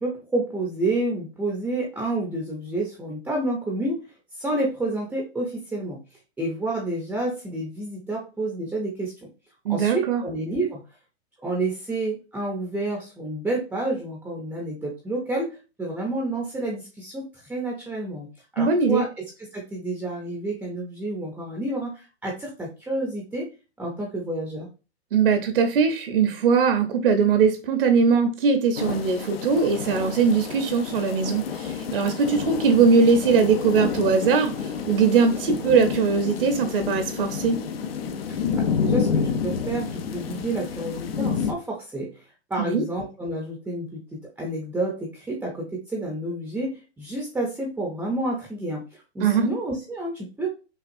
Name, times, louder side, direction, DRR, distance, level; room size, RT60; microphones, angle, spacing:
voice 1, 0.0-4.0 4.4-6.0 6.4-9.3 9.7-10.8 11.4-18.3 18.5-19.1 19.5-23.5 23.8-24.7 38.3-42.1 42.5-44.0 44.4-50.5, right 2 dB, 5° right, 0.6 m, -29 dB
voice 2, 9.6-10.2 18.6-19.0 25.1-34.5 34.9-37.6 42.6-42.8 49.2-49.5, right 5 dB, 60° right, 0.8 m, -20 dB
sound 1, 28.8-41.5, left 6 dB, 65° left, 0.7 m, -29 dB
5.9 x 2.3 x 2.6 m
hypercardioid pair, 130°, 32 cm